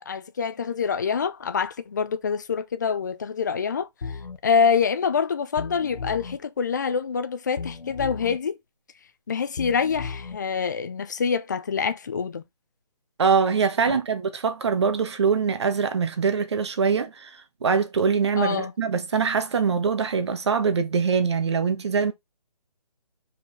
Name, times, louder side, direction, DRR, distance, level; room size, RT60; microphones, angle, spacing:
voice 1, 0.0-3.9 4.4-8.6 9.3-12.4 13.9-14.0 18.4-18.7, left 6 dB, 25° left, 0.5 m, -26 dB
sound 1, 4.0-4.4 5.6-6.4 7.6-8.4 9.6-10.4, left 5 dB, 85° left, 1.2 m, -35 dB
voice 2, 13.2-22.1, right 5 dB, 40° right, 1.4 m, -23 dB
6.0 x 4.9 x 3.6 m
figure-of-eight pair, 165°, 21 cm